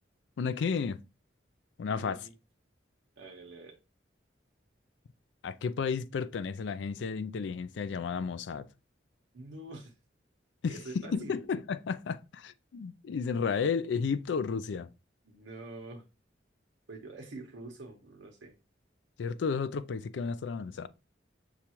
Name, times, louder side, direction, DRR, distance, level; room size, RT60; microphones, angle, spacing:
voice 1, 0.4-1.0 1.8-2.2 5.4-8.7 10.6-14.9 19.2-20.9, left 5 dB, 65° left, 0.4 m, -32 dB
voice 2, 1.9-2.3 3.2-3.8 9.3-9.9 10.7-11.4 15.2-16.0 16.9-18.5, right 2 dB, 75° right, 0.9 m, -46 dB
6.6 x 2.4 x 2.9 m
head